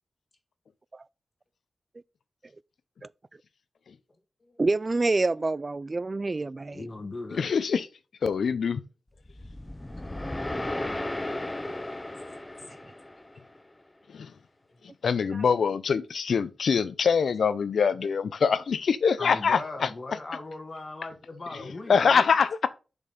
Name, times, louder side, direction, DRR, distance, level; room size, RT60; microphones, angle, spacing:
voice 1, 4.6-6.9 15.3-15.4, right 3 dB, 35° right, 0.3 m, -27 dB
voice 2, 6.7-7.5 12.3-12.4 12.7-12.8 19.2-22.3, left 2 dB, 40° left, 1.6 m, -39 dB
voice 3, 7.3-7.9 8.2-8.8 14.1-14.3 15.0-19.9 21.9-22.7, left 6 dB, 85° left, 0.6 m, -24 dB
sound 1, 9.2-13.6, left 1 dB, 15° left, 0.6 m, -35 dB
6.9 x 5.3 x 4.1 m
wide cardioid pair, 105°, 0 cm